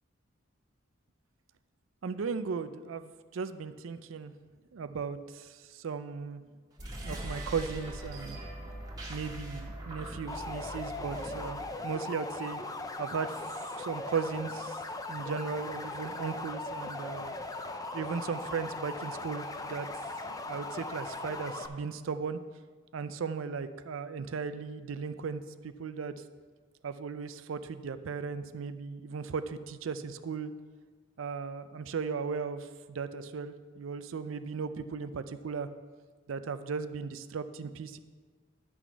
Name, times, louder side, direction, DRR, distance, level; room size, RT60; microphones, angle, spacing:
voice 1, 2.0-4.3 4.7-6.4 7.0-8.4 9.1-12.6 13.0-14.8 15.1-17.3 17.9-19.9 20.5-22.4 22.9-26.1 26.8-30.5 31.2-35.7 36.3-38.0, right 5 dB, 75° right, 11 dB, 0.4 m, -36 dB
sound 1, 6.7-11.8, right 1 dB, 20° right, 1.6 m, -41 dB
sound 2, 10.3-21.7, left 2 dB, 20° left, 0.5 m, -39 dB
11.0 x 6.2 x 4.5 m, 1.5 s
head